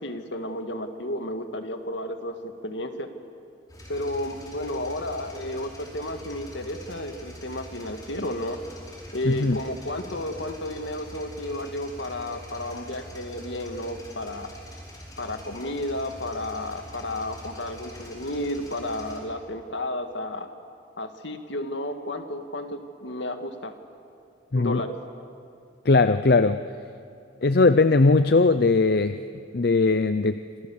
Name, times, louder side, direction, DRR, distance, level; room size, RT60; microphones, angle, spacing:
voice 1, 0.0-3.1 3.9-8.6 9.1-14.5 15.2-20.5 21.0-23.7 24.5-24.9, left 1 dB, 70° left, 6 dB, 2.0 m, -32 dB
sound 1, 3.7-19.2, equal, 20° left, 4.7 m, -44 dB
voice 2, 9.2-9.6 24.5-24.8 25.9-26.6 27.4-29.2 29.5-30.4, left 3 dB, 55° left, 11 dB, 0.6 m, -19 dB
26.5 x 26.5 x 7.2 m, 2.4 s
head